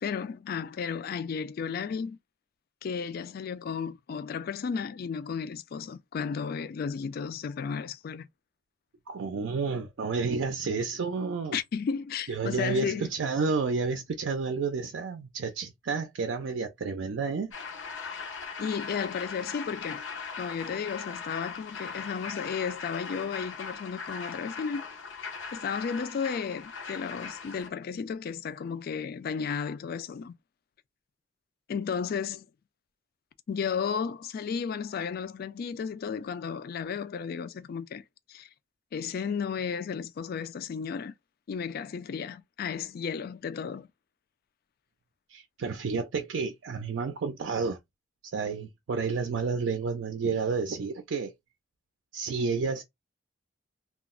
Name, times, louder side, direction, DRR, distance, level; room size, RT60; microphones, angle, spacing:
voice 1, 0.0-2.2 2.8-8.3 11.5-13.1 18.6-20.0 20.4-24.8 25.5-30.3 31.7-32.5 33.5-38.0 38.3-38.5 38.9-41.1 41.5-43.9, left 6 dB, 55° left, 0.3 m, -33 dB
voice 2, 9.1-11.6 12.3-17.5 45.3-47.8 48.2-51.3 52.1-52.8, right 4 dB, 80° right, 0.4 m, -30 dB
sound 1, 17.5-27.7, left 5 dB, 90° left, 0.7 m, -40 dB
2.3 x 2.0 x 3.6 m
head